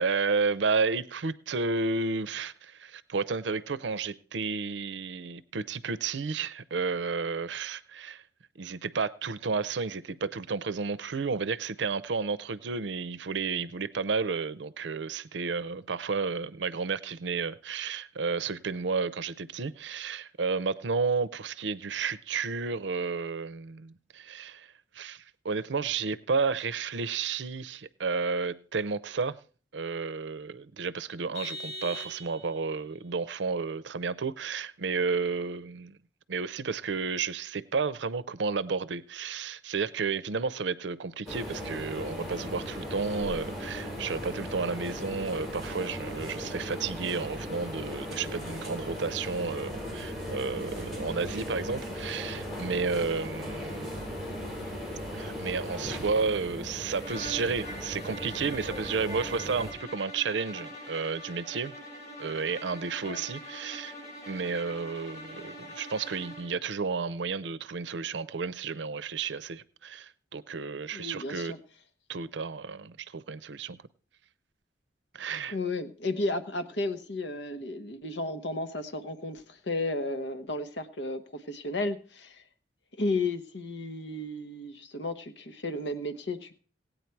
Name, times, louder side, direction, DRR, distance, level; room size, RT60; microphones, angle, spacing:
voice 1, 0.0-8.2 8.6-29.4 29.7-36.0 36.3-54.0 55.1-61.7 62.2-63.9 64.3-71.5 72.1-73.8 75.1-75.6, right 4 dB, 85° right, 0.6 m, -32 dB
Vehicle horn car horn honking, 31.3-32.7, equal, 20° right, 4.2 m, -40 dB
sound 1, 41.3-59.7, equal, ahead, 6.3 m, -37 dB
sound 2, 57.0-66.6, equal, 40° left, 6.7 m, -43 dB
voice 2, 70.9-71.6 75.5-82.4 83.0-86.6, left 2 dB, 75° left, 1.1 m, -33 dB
18.0 x 9.1 x 4.6 m
head